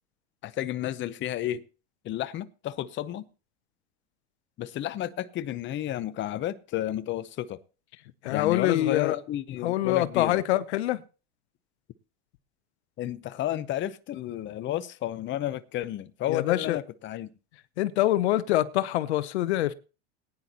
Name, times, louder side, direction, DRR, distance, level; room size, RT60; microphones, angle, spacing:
voice 1, 0.4-1.6 2.0-3.2 4.6-7.6 8.3-10.4 13.0-17.3, left 13 dB, 35° left, 0.8 m, -32 dB
voice 2, 8.2-9.1 9.6-11.0 16.3-16.8 17.8-19.7, left 14 dB, 85° left, 0.9 m, -25 dB
19.0 x 10.0 x 2.9 m
supercardioid pair, 115°, 32 cm